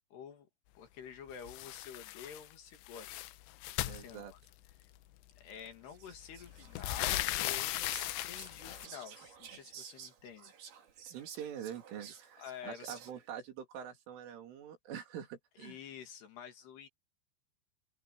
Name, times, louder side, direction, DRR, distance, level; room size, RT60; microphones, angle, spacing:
voice 1, 0.1-0.5 0.8-3.2 3.8-4.2 4.8-4.9 5.4-10.5 12.4-13.0 15.6-16.9, left 8 dB, 60° left, 4.3 m, -49 dB
sound 1, 1.5-2.5 2.8-4.7 5.7-5.8 6.1-8.9, left 16 dB, 80° left, 2.9 m, -37 dB
voice 2, 3.8-4.3 11.1-15.8, right 9 dB, 85° right, 5.7 m, -45 dB
Whispering, 5.9-13.3, right 8 dB, 55° right, 4.3 m, -52 dB
omnidirectional pair, 5.5 m